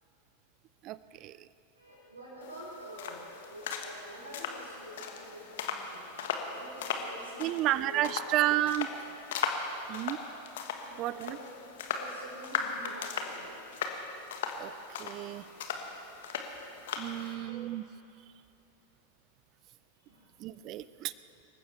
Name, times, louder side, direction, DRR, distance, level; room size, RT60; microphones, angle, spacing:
voice 1, 0.8-1.3 7.4-8.9 9.9-10.2 11.0-11.4 14.6-14.7 15.0-15.4 17.0-17.8 20.4-21.1, right 14 dB, 35° right, 17 dB, 0.5 m, -31 dB
voice 2, 1.7-8.7 10.8-11.5 11.8-13.9 17.1-17.7 20.1-20.3, equal, 80° right, -9 dB, 3.9 m, -48 dB
sound 1, 2.4-17.3, left 6 dB, 55° left, 1.4 m, -38 dB
26.5 x 15.0 x 3.4 m, 2.8 s
figure-of-eight pair, 90°, 0 cm